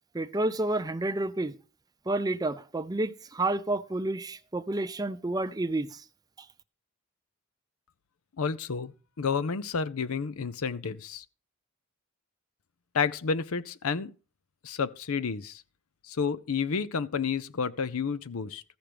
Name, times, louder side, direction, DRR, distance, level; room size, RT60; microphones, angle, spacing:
voice 1, 0.1-1.6 2.1-6.0, right 2 dB, 20° right, 0.5 m, -30 dB
voice 2, 8.4-8.9 9.2-11.2 12.9-14.1 14.6-15.6 16.1-18.6, left 5 dB, 75° left, 0.6 m, -30 dB
14.0 x 6.0 x 5.1 m
head